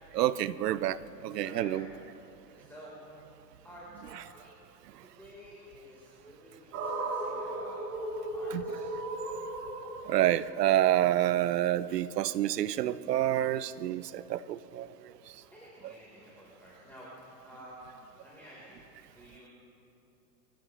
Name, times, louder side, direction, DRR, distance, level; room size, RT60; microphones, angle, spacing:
voice 1, 0.2-1.0 1.2-1.9 8.5-8.6 10.1-14.9 15.8-15.9, right 13 dB, 75° right, 17 dB, 0.7 m, -28 dB
voice 2, 1.4-1.7 2.4-3.0 3.6-4.5 5.0-7.9 8.3-8.9 15.5-17.1 17.4-17.8 18.2-19.5, equal, 5° left, -7 dB, 4.0 m, -51 dB
sound 1, 6.7-11.0, right 2 dB, 35° right, 4.2 m, -36 dB
27.5 x 14.5 x 3.2 m, 2.9 s
hypercardioid pair, 110°, 48 cm